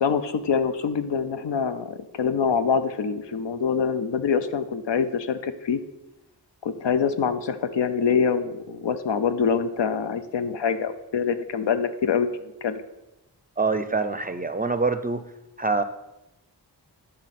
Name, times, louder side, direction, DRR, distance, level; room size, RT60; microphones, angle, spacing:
voice 1, 0.0-5.8 6.6-12.8, left 6 dB, 80° left, 10 dB, 0.6 m, -25 dB
voice 2, 13.6-15.2 15.6-15.8, right 3 dB, 20° right, 11 dB, 0.4 m, -25 dB
11.5 x 3.9 x 4.2 m, 0.96 s
wide cardioid pair, 50°, 42 cm